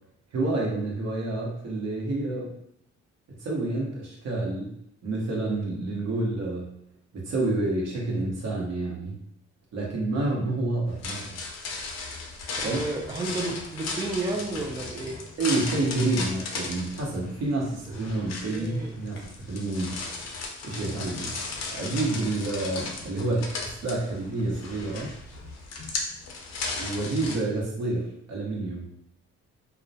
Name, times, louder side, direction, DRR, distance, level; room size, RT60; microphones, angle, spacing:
voice 1, 0.3-2.5 3.4-4.7 5.0-6.8 7.1-9.2 9.7-11.4 12.6-12.8 15.4-20.0 20.6-21.4 21.7-25.1 26.8-28.9, right 2 dB, 60° right, -2 dB, 0.9 m, -29 dB
sound 1, 10.9-27.4, left 3 dB, 60° left, 0.6 m, -36 dB
voice 2, 12.6-15.2 18.4-19.0, right 2 dB, 15° right, 0 dB, 0.3 m, -32 dB
2.3 x 2.0 x 2.6 m, 0.74 s
cardioid pair, 90°, 30 cm